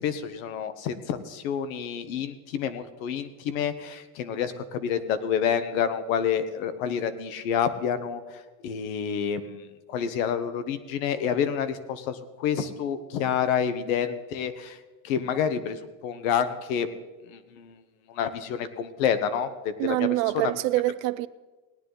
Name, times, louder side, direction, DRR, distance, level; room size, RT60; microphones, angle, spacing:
voice 1, 0.0-16.9 17.3-17.8 18.1-20.5, left 8 dB, 85° left, 1.2 m, -29 dB
voice 2, 19.8-21.3, right 17 dB, 85° right, 0.6 m, -25 dB
18.0 x 9.8 x 3.9 m
cardioid pair, 150°, 39 cm